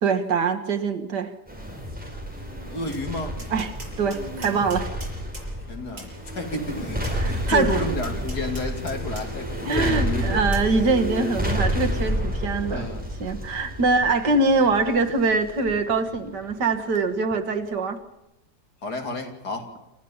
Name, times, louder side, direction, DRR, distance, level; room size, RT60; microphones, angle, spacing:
voice 1, 0.0-1.4 3.5-4.9 7.2-7.9 9.6-12.9 13.2-18.0, right 3 dB, 85° right, 7 dB, 2.3 m, -23 dB
sound 1, 1.5-17.0 17.3-17.4, equal, 5° right, 5.2 m, -30 dB
voice 2, 2.7-3.4 5.7-10.4 12.7-13.0 18.8-19.7, left 2 dB, 70° left, 4 dB, 3.5 m, -31 dB
Tap, 2.9-3.0 3.4-5.5 6.0-6.1 7.0-7.2 8.0-9.3 9.7-9.8 10.5-10.7, right 1 dB, 50° right, 7.1 m, -42 dB
28.5 x 14.0 x 7.2 m, 0.94 s
omnidirectional pair, 1.8 m